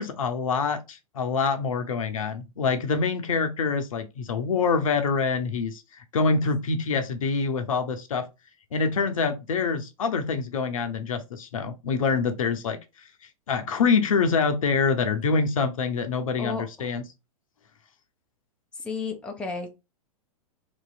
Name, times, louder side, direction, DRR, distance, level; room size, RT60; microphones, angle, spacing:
voice 1, 0.0-8.3 8.7-12.8 13.5-17.0, left 5 dB, 65° left, 0.6 m, -25 dB
voice 2, 16.4-16.9 18.8-19.7, left 4 dB, 5° left, 0.4 m, -33 dB
3.0 x 2.7 x 2.4 m
figure-of-eight pair, 105°, 19 cm